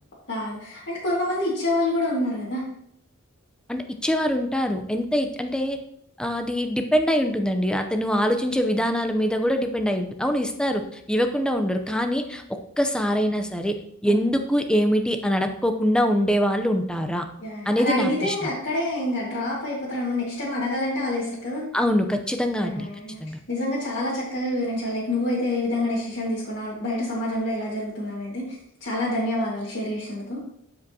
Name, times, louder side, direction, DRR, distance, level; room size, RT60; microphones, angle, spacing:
voice 1, 0.3-2.6 14.0-14.2 17.4-21.6 22.6-23.2 23.5-28.6 28.8-30.4, left 1 dB, 60° left, -7 dB, 1.8 m, -27 dB
voice 2, 3.7-5.8 6.2-13.8 14.0-17.3 17.7-18.5 21.7-22.9 23.2-23.4, equal, 5° left, 5 dB, 0.6 m, -24 dB
12.0 x 5.1 x 2.8 m, 0.71 s
head